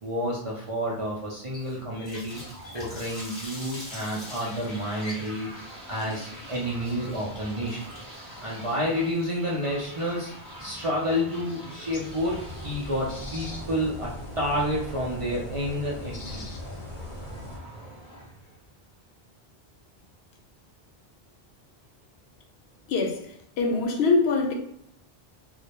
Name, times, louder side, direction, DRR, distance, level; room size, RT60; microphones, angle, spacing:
voice 1, 0.0-2.4 2.7-7.8 8.4-10.3 10.6-14.1 14.4-16.5, equal, 45° right, 0.4 m, -30 dB
Water tap faucet, 1.5-10.5, left 1 dB, 30° left, 0.8 m, -45 dB
sound 1, 2.3-19.0, right 1 dB, 5° right, 0.8 m, -44 dB
sound 2, 11.8-17.6, left 2 dB, 45° left, 0.4 m, -40 dB
voice 2, 22.9-24.5, left 3 dB, 90° left, 0.8 m, -24 dB
2.1 x 2.0 x 2.8 m
omnidirectional pair, 1.0 m